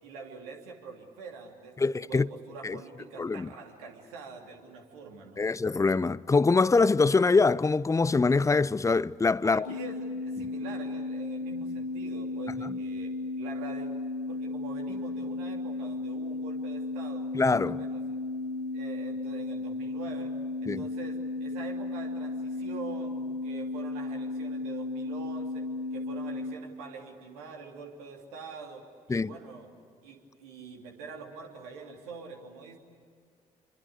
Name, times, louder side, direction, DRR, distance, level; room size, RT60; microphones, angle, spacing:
voice 1, 0.0-1.7 2.1-5.5 9.4-13.9 14.3-17.3 17.7-18.2 18.7-20.3 20.6-25.6 25.9-29.7 30.0-32.8, right 4 dB, 70° right, 3.1 m, -45 dB
voice 2, 1.8-2.3 2.6-2.8 3.2-3.5 5.4-9.7 17.3-17.8 20.7-20.8 29.1-29.3, left 4 dB, 15° left, 0.6 m, -24 dB
sound 1, 9.7-26.6, left 2 dB, 85° left, 0.9 m, -34 dB
28.5 x 24.5 x 8.0 m
figure-of-eight pair, 45°, 19 cm